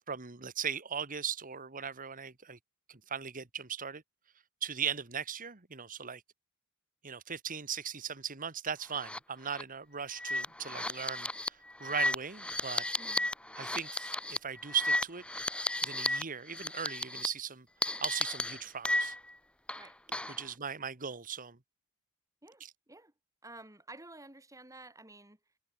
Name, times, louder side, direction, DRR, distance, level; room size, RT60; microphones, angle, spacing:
voice 1, 0.1-2.6 2.9-4.0 4.6-6.2 7.0-12.8 13.5-15.2 15.8-17.7 18.0-19.1 20.3-21.6 22.6-22.7, right 7 dB, 35° right, 1.6 m, -38 dB
sound 1, 9.0-9.2 9.5-9.6 10.1-16.2 16.5-17.3 17.8-19.3 19.7-20.4, left 1 dB, 5° left, 0.7 m, -34 dB
voice 2, 13.0-13.3 19.8-20.0 20.3-20.4 22.4-23.1 23.4-25.4, right 2 dB, 15° right, 5.2 m, -52 dB
head